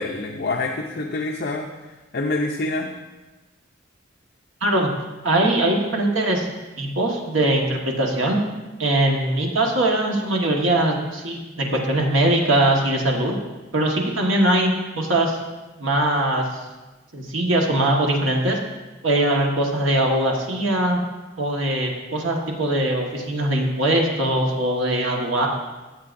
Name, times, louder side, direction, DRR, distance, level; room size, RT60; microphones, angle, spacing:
voice 1, 0.0-1.7 2.1-2.9, left 2 dB, 55° left, 1 dB, 0.6 m, -26 dB
voice 2, 5.2-6.5 6.8-8.4 8.8-13.4 13.7-15.4 15.8-16.6 17.1-18.6 19.0-21.0 21.4-25.5, right 1 dB, 80° right, 0 dB, 1.5 m, -21 dB
14.5 x 7.6 x 2.6 m, 1.2 s
head